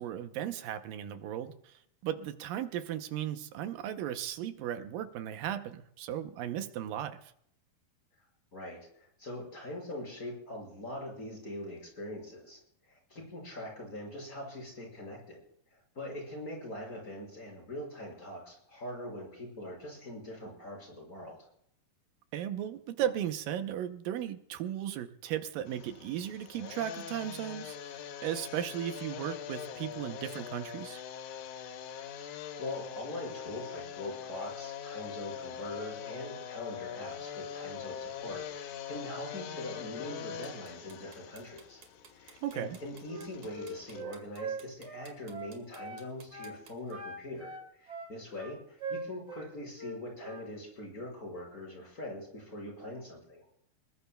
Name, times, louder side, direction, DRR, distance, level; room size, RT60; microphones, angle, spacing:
voice 1, 0.0-7.3 22.3-31.0 42.4-42.8, right 10 dB, 75° right, 8 dB, 2.4 m, -36 dB
voice 2, 8.5-12.6 12.9-15.4 15.9-21.4 32.2-41.8 42.1-53.5, left 1 dB, 20° left, -1 dB, 6.2 m, -42 dB
sound 1, 25.7-44.0, left 8 dB, 70° left, 2.1 m, -43 dB
sound 2, 40.4-46.9, right 6 dB, 55° right, 3.2 m, -56 dB
Wind instrument woodwind instrument, 43.1-46.1 46.3-46.6 46.9-49.5 49.8-50.5, right 3 dB, 20° right, 2.7 m, -41 dB
21.5 x 20.5 x 2.3 m, 0.68 s
omnidirectional pair, 4.1 m